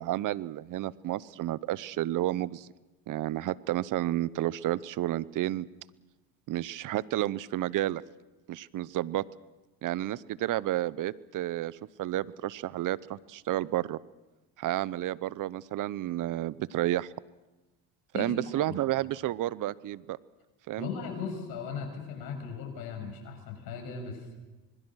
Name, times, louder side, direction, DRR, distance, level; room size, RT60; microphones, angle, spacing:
voice 1, 0.0-2.7 3.1-5.7 6.5-8.0 8.5-9.2 9.8-14.0 14.6-17.1 18.1-20.2 20.7-20.9, right 14 dB, 55° right, 20 dB, 0.8 m, -31 dB
voice 2, 18.1-18.8 20.8-24.3, left 5 dB, 70° left, 3 dB, 7.1 m, -38 dB
26.0 x 21.0 x 6.4 m, 1.1 s
supercardioid pair, 80°, 38 cm